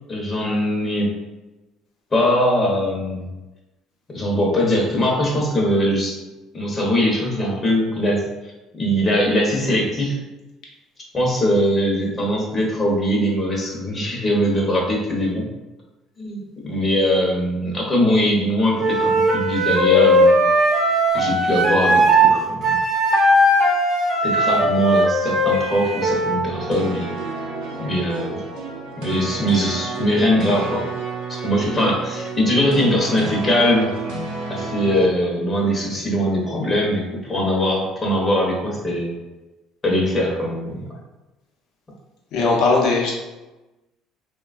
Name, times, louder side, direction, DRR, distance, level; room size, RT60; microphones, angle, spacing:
voice 1, 0.1-1.1 2.1-3.2 4.1-6.1 6.5-8.3 8.8-10.2 11.1-15.5 16.2-20.5 21.1-22.7 24.2-27.1 27.8-28.4 29.0-30.9 31.4-33.9 34.5-39.1 39.8-40.8, equal, 25° left, -2 dB, 0.7 m, -21 dB
Wind instrument woodwind instrument, 18.8-22.3 22.6-26.4, right 1 dB, 45° right, 0.6 m, -18 dB
sound 1, 26.5-35.1, right 3 dB, 90° right, 0.6 m, -30 dB
voice 2, 42.3-43.1, left 3 dB, 65° left, -2 dB, 0.7 m, -18 dB
3.0 x 2.2 x 2.4 m, 1.1 s
cardioid pair, 115°, 0 cm